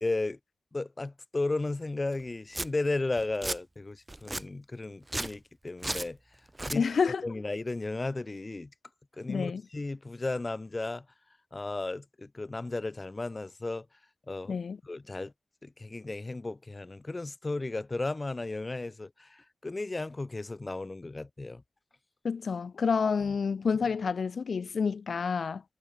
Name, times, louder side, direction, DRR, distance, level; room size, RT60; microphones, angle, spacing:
voice 1, 0.0-0.4 0.7-6.2 6.6-8.7 9.2-11.1 11.5-13.9 14.3-14.5 14.8-15.3 15.6-21.6, left 2 dB, 30° left, 0.8 m, -34 dB
Domestic sounds home sounds, 2.1-2.2 2.5-2.7 3.2-3.6 4.1-4.4 5.0-5.4 5.8-6.1 6.5-6.8, right 1 dB, 20° right, 0.4 m, -34 dB
voice 2, 6.7-7.3 9.3-9.6 14.5-14.8 22.2-25.6, left 5 dB, 75° left, 0.3 m, -29 dB
wide cardioid pair, 90°, 0 cm